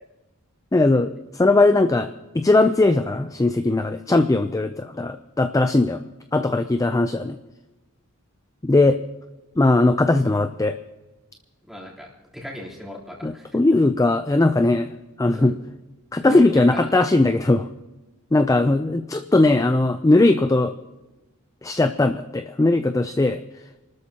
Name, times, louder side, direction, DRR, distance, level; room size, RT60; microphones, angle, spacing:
voice 1, 0.7-2.1 2.3-6.0 6.3-7.4 8.6-9.0 9.6-10.7 13.2-14.9 15.2-15.5 16.1-17.7 18.3-20.7 21.6-23.4, left 2 dB, 15° left, 9 dB, 0.4 m, -19 dB
voice 2, 11.6-12.1 12.3-13.8 15.3-15.5 16.2-16.9, equal, ahead, -5 dB, 3.4 m, -35 dB
28.0 x 13.0 x 2.9 m, 1.1 s
head